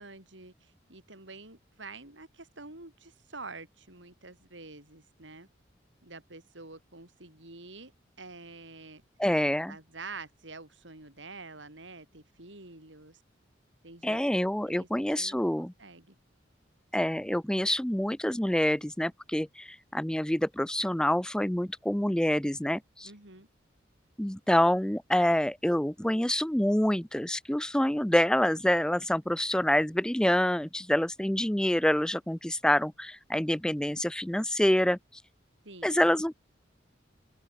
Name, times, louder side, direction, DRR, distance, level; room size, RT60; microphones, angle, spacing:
voice 1, 0.0-5.5 6.0-7.9 8.2-9.0 9.7-13.2 13.8-14.2 14.6-14.9 15.1-16.2 23.0-23.5 35.6-36.0, right 3 dB, 85° right, 5.1 m, -47 dB
voice 2, 9.2-9.7 14.0-15.7 16.9-23.1 24.2-35.0 35.8-36.4, left 1 dB, 5° left, 0.4 m, -27 dB
open air
head